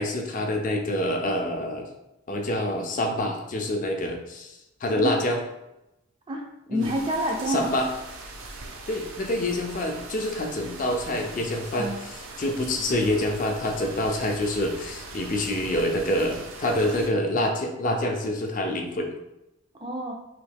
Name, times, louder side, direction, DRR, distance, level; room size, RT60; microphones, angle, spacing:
voice 1, 0.0-1.8 2.3-5.4 6.7-6.9 7.5-7.9 8.9-19.1, left 1 dB, 40° left, 3 dB, 0.4 m, -27 dB
voice 2, 4.9-5.3 6.3-7.7 11.7-12.0 19.8-20.1, equal, 25° right, 1 dB, 0.4 m, -28 dB
sound 1, 6.8-17.1, right 3 dB, 80° right, 0.7 m, -41 dB
3.1 x 2.7 x 3.3 m, 0.91 s
head